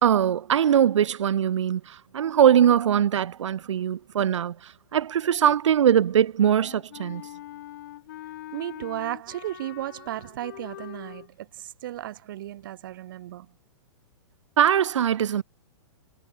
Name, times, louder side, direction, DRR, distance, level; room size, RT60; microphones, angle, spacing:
voice 1, 0.0-4.5 4.9-7.2 14.6-15.4, right 9 dB, 60° right, 2.5 m, -21 dB
Wind instrument woodwind instrument, 6.4-11.3, left 15 dB, 35° left, 2.0 m, -43 dB
voice 2, 8.5-13.5, right 14 dB, 40° right, 7.7 m, -35 dB
hypercardioid pair, 180°, 17 cm